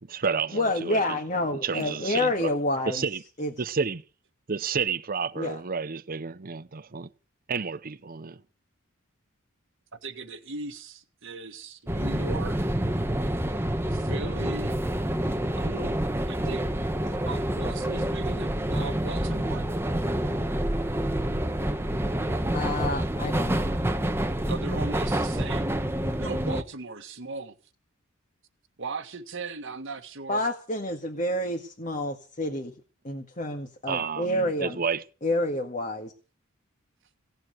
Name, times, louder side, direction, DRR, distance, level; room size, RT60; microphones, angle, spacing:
voice 1, 0.0-1.2 1.5-2.5 2.9-3.2 3.6-4.0 4.5-7.1 7.5-8.4 33.9-35.0, right 5 dB, 45° right, 0.7 m, -30 dB
voice 2, 0.5-3.0 3.4-3.5 5.4-5.6 22.5-23.6 30.3-32.7 33.0-34.8 35.2-36.1, left 1 dB, 35° left, 1.8 m, -28 dB
voice 3, 10.0-12.6 13.9-14.8 15.6-16.0 16.3-16.7 17.0-19.6 24.5-25.7 26.2-27.5 28.8-30.4, right 3 dB, 65° right, 1.7 m, -38 dB
sound 1, 11.9-26.6, right 1 dB, 10° right, 1.1 m, -27 dB
17.0 x 7.7 x 9.2 m
head